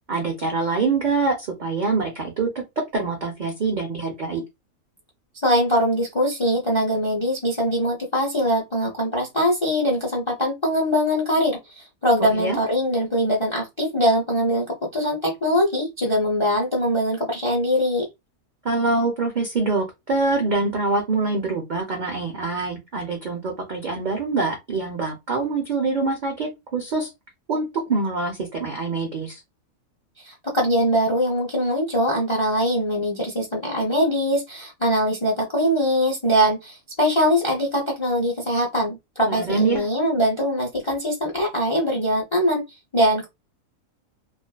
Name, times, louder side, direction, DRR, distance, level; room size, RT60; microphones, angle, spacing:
voice 1, 0.1-2.5 2.9-4.4 12.2-12.6 18.6-27.1 27.5-29.4 39.3-39.9, right 3 dB, 80° right, 0.4 m, -25 dB
voice 2, 5.4-18.1 30.2-42.6 42.9-43.3, equal, 50° left, 0.3 m, -22 dB
2.5 x 2.3 x 2.2 m
omnidirectional pair, 1.5 m